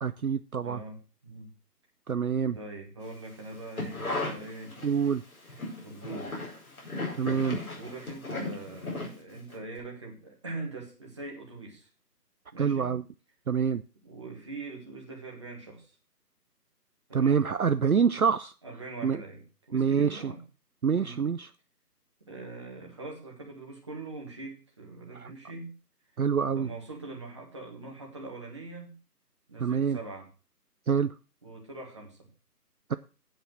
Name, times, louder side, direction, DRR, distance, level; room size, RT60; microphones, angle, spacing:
voice 1, 0.0-0.8 2.1-2.6 4.8-5.2 7.2-7.6 12.6-13.0 13.5-13.8 17.1-18.5 19.0-19.2 19.7-20.3 20.8-21.5 25.2-25.3 26.2-26.7 29.6-30.0 30.9-31.1 32.9-33.0, right 6 dB, 65° right, 0.6 m, -26 dB
voice 2, 0.6-1.5 2.5-4.7 5.5-6.4 7.7-11.9 12.5-13.0 14.0-15.9 17.1-17.5 18.6-20.4 21.0-21.2 22.2-25.8 26.4-28.9 29.5-30.3 31.4-32.3, right 2 dB, 20° right, 1.7 m, -42 dB
sound 1, 3.5-5.1 5.4-9.5 9.8-9.9, left 2 dB, 60° left, 4.6 m, -36 dB
8.9 x 8.2 x 6.0 m
figure-of-eight pair, 170°, 48 cm